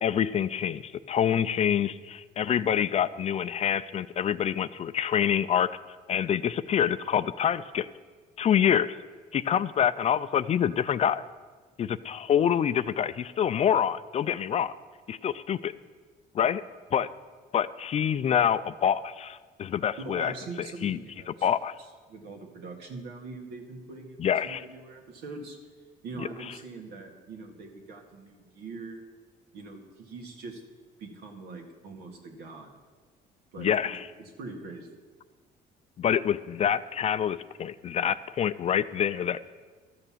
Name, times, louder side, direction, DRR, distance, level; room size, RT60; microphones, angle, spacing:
voice 1, 0.0-5.8 6.1-7.9 8.4-9.0 9.3-11.2 11.8-14.7 15.1-15.7 16.3-16.6 16.9-17.1 17.5-20.3 20.6-21.0 21.3-21.7 24.2-24.6 26.2-26.3 33.6-34.1 36.0-39.5, left 9 dB, 40° left, 15 dB, 0.4 m, -26 dB
voice 2, 20.0-21.5 22.1-25.6 26.0-29.0 29.5-30.6 31.0-32.7 33.5-33.7 34.2-35.0, right 3 dB, 80° right, 2 dB, 1.9 m, -42 dB
13.0 x 6.7 x 7.3 m, 1.4 s
cardioid pair, 110°, 17 cm